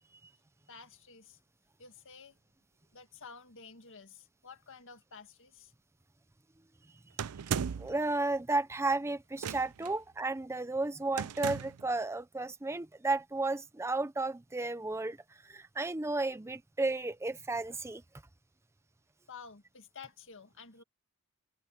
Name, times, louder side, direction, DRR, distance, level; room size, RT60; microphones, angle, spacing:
voice 1, 0.7-1.4 1.8-2.4 2.9-5.7 10.5-10.6 19.3-20.8, left 5 dB, 60° left, 1.9 m, -51 dB
sound 1, 7.2-8.0 9.4-9.9 11.2-11.9, right 7 dB, 80° right, 0.5 m, -36 dB
voice 2, 7.6-15.2 15.4-18.0, right 2 dB, 10° right, 0.5 m, -33 dB
head